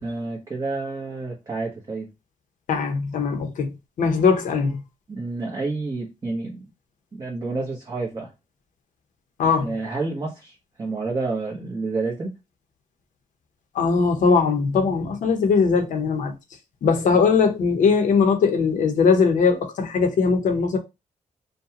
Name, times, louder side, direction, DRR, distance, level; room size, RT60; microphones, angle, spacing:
voice 1, 0.0-2.1 5.1-6.7 7.1-8.3 9.6-12.3, right 3 dB, 25° right, 1.0 m, -29 dB
voice 2, 2.7-3.7 4.0-4.8 9.4-9.7 13.7-16.3 16.8-20.8, left 5 dB, 75° left, 0.9 m, -20 dB
5.1 x 2.3 x 2.9 m
cardioid pair, 125°, 13 cm